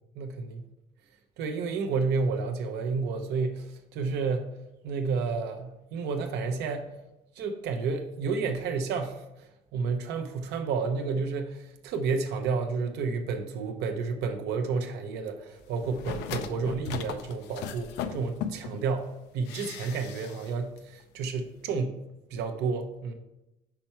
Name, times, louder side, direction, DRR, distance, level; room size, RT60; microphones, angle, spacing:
voice 1, 0.2-0.6 1.4-3.7 3.9-4.5 4.8-6.9 7.4-9.2 9.7-11.6 11.8-19.1 19.3-22.0 22.3-23.1, right 4 dB, 80° right, 5 dB, 0.8 m, -30 dB
sound 1, 15.8-18.8 19.5-20.5 20.8-20.9, left 8 dB, 85° left, 0.5 m, -37 dB
5.9 x 4.5 x 4.3 m, 0.95 s
cardioid pair, 110°, 17 cm